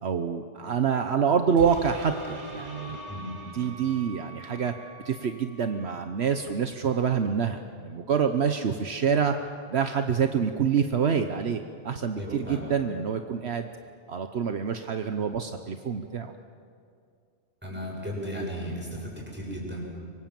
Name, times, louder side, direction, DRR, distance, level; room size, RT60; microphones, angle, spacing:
voice 1, 0.0-3.0 3.5-4.7 5.0-9.3 9.7-13.7 14.1-16.3, right 7 dB, 70° right, 7 dB, 1.2 m, -26 dB
sound 1, 1.6-4.5 5.0-5.1, right 1 dB, 40° right, 3.2 m, -42 dB
Wind instrument woodwind instrument, 2.0-6.8, right 2 dB, 75° left, 4.0 m, -49 dB
voice 2, 12.1-12.7 17.6-19.8, equal, 10° right, -3 dB, 7.3 m, -35 dB
25.0 x 24.5 x 7.7 m, 2.3 s
omnidirectional pair, 1.2 m